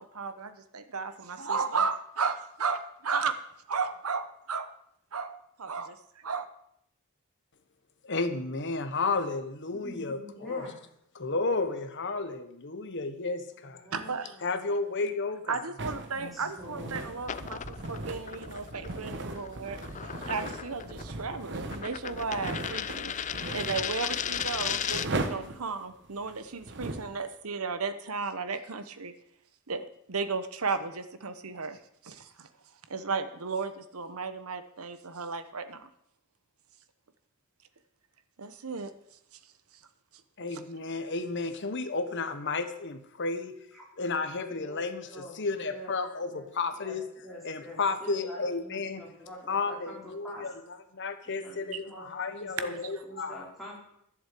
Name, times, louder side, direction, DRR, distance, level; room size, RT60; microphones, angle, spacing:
voice 1, 0.0-3.4 3.7-4.7 5.1-6.0 6.2-6.5 13.9-14.4 15.5-23.1 23.5-29.1 29.7-31.8 32.0-32.5 32.9-35.9 38.4-38.9 52.6-52.8, right 5 dB, 75° right, 11 dB, 1.0 m, -34 dB
voice 2, 8.0-10.2 10.5-10.7 11.1-13.8 14.4-15.7 40.4-43.5 44.0-47.0 47.4-49.0 49.5-53.5, left 3 dB, 55° left, 8 dB, 1.2 m, -32 dB
voice 3, 9.7-10.7 11.2-11.7 13.5-14.6 16.3-16.9 43.7-43.8 44.5-45.9 46.2-50.5 51.2-53.8, equal, ahead, -6 dB, 4.5 m, -46 dB
sound 1, 15.8-27.2, right 2 dB, 55° right, 1.2 m, -38 dB
sound 2, 17.2-25.3, left 9 dB, 35° left, 0.4 m, -36 dB
11.5 x 7.3 x 8.3 m, 0.74 s
head